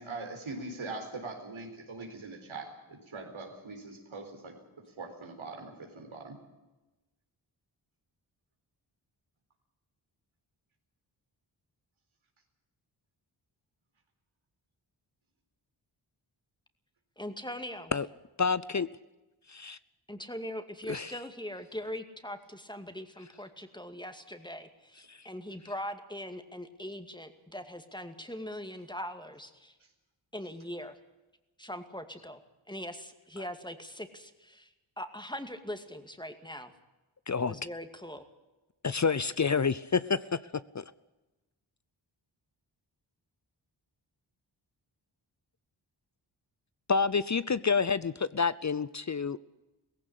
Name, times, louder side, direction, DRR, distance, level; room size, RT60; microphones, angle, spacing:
voice 1, 0.0-4.5 5.0-6.4, right 3 dB, 80° right, 2 dB, 4.3 m, -42 dB
voice 2, 17.2-17.9 20.1-29.7 30.3-31.0 31.6-32.4 32.7-36.7 37.5-38.2, equal, 10° left, 8 dB, 2.3 m, -41 dB
voice 3, 18.4-18.9 19.5-19.8 20.9-21.1 25.1-25.2 37.3-37.5 38.8-40.2 46.9-49.4, left 5 dB, 35° left, 17 dB, 0.7 m, -28 dB
17.0 x 16.0 x 9.9 m, 1.1 s
cardioid pair, 40°, 48 cm